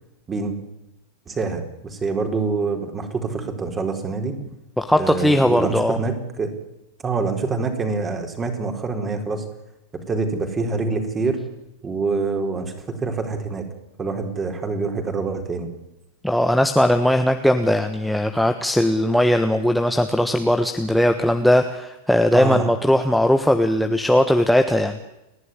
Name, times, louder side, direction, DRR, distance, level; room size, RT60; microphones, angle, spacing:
voice 1, 1.3-4.4 5.0-6.5 7.0-9.4 9.9-11.4 11.8-13.6 14.0-15.7 22.3-22.7, right 4 dB, 20° right, 5 dB, 4.4 m, -25 dB
voice 2, 4.8-6.0 16.2-24.9, left 1 dB, ahead, 6 dB, 1.3 m, -19 dB
30.0 x 11.5 x 9.8 m, 0.94 s
figure-of-eight pair, 90°, 0 cm